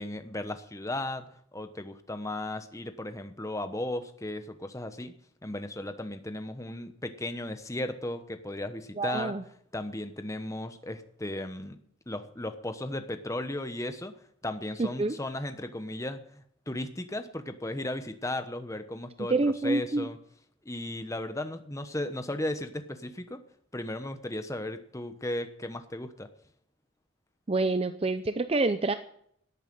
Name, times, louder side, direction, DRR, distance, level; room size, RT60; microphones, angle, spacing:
voice 1, 0.0-5.1 5.4-9.3 9.7-11.8 12.1-14.1 14.4-19.4 19.6-20.2 20.6-23.4 23.7-26.3, left 1 dB, 15° left, 8 dB, 1.1 m, -35 dB
voice 2, 9.0-9.4 14.8-15.2 19.3-20.1 27.5-28.9, right 3 dB, 30° right, 10 dB, 0.5 m, -27 dB
17.0 x 9.1 x 7.7 m, 0.68 s
head